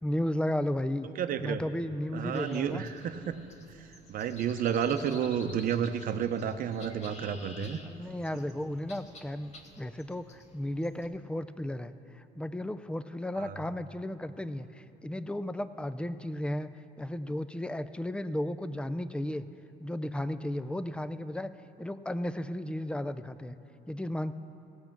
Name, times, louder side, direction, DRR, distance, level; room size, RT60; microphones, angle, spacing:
voice 1, 0.0-1.1 1.4-2.8 7.9-19.5 19.8-21.5 21.8-23.6 23.9-24.3, left 1 dB, 5° left, 12 dB, 0.4 m, -34 dB
voice 2, 1.2-1.6 2.1-3.4 3.7-7.8 13.4-13.6, right 8 dB, 55° right, 9 dB, 0.7 m, -31 dB
sound 1, 2.3-11.1, left 2 dB, 40° left, 1.3 m, -52 dB
17.0 x 7.8 x 5.9 m, 2.9 s
cardioid pair, 110°, 17 cm